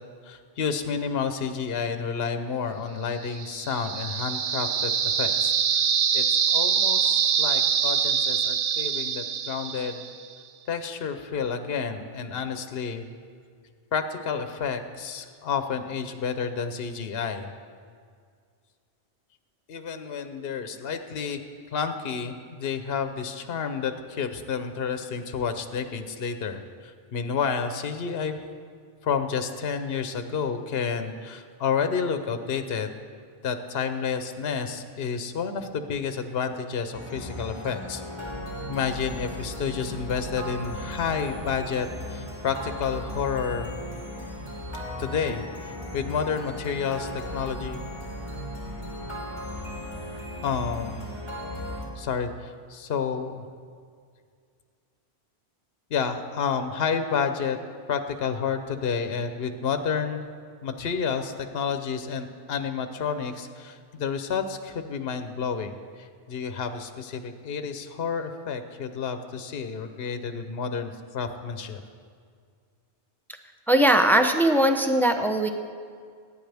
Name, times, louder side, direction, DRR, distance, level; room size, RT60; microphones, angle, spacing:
voice 1, 0.2-10.0 10.7-13.0 13.9-17.5 19.7-21.4 21.7-28.4 29.0-33.0 33.4-38.0 38.7-43.7 45.0-47.8 50.4-51.1 52.0-53.4 55.9-57.6 57.9-60.2 60.6-71.8, left 6 dB, 70° left, 8 dB, 1.0 m, -30 dB
sound 1, 3.3-10.2, right 7 dB, 50° right, 0.5 m, -24 dB
sound 2, 36.9-51.8, left 1 dB, 25° right, 3.0 m, -36 dB
voice 2, 73.7-75.5, right 1 dB, ahead, 6 dB, 0.6 m, -20 dB
23.0 x 9.9 x 3.4 m, 2.1 s
omnidirectional pair, 1.1 m